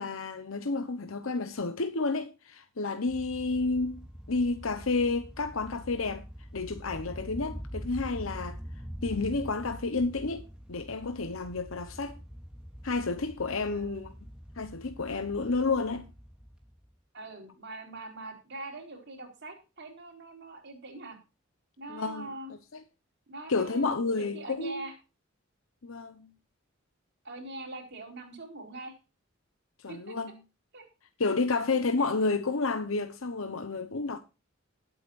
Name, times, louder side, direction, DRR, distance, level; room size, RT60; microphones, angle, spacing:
voice 1, 0.0-4.0 4.3-6.2 6.5-8.6 9.0-12.2 12.8-14.1 14.6-16.1 21.9-22.3 22.7-22.8 23.5-24.8 25.8-26.3 29.8-30.3 31.2-34.2, left 3 dB, 80° left, 1.0 m, -30 dB
sound 1, 3.1-16.9, equal, 5° right, 3.0 m, -44 dB
voice 2, 13.7-14.1 17.1-21.2 21.8-22.5 23.3-23.9 24.2-24.9 27.2-28.9 29.9-30.1 30.7-30.9 31.5-31.6, right 2 dB, 60° right, 4.3 m, -43 dB
20.0 x 8.4 x 2.5 m
head